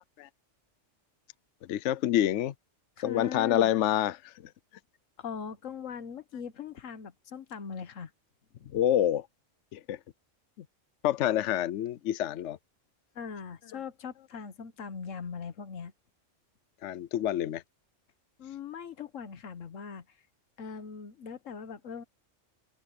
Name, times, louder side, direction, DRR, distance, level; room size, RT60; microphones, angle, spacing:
voice 1, 1.7-2.5 3.0-4.3 8.7-9.3 9.7-10.0 11.0-12.6 16.8-17.6, left 12 dB, 70° left, 0.9 m, -27 dB
voice 2, 3.0-3.7 5.2-8.1 8.5-8.8 13.1-15.9 18.4-20.2 20.6-22.0, left 6 dB, 90° left, 1.5 m, -40 dB
open air
omnidirectional pair, 1.3 m